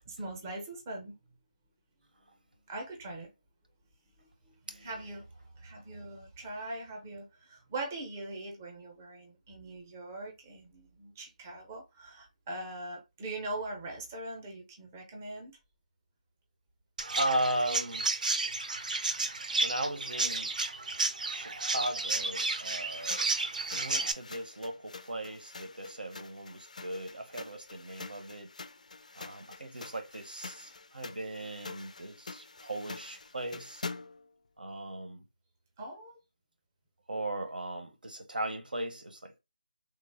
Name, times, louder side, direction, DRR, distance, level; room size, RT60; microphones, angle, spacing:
voice 1, 0.1-1.2 2.7-3.3 4.2-5.3 5.6-15.6 19.2-19.3 35.8-36.2, right 2 dB, 15° right, 0.5 m, -42 dB
Chirp tweet, 17.0-24.1, right 3 dB, 60° right, 0.5 m, -32 dB
voice 2, 17.1-18.1 19.6-20.5 21.2-28.5 29.1-33.8 34.6-35.2 37.1-39.4, right 1 dB, 90° right, 0.8 m, -37 dB
sound 1, 22.9-34.3, left 4 dB, 55° left, 0.3 m, -46 dB
3.3 x 2.0 x 3.3 m
figure-of-eight pair, 170°, 5 cm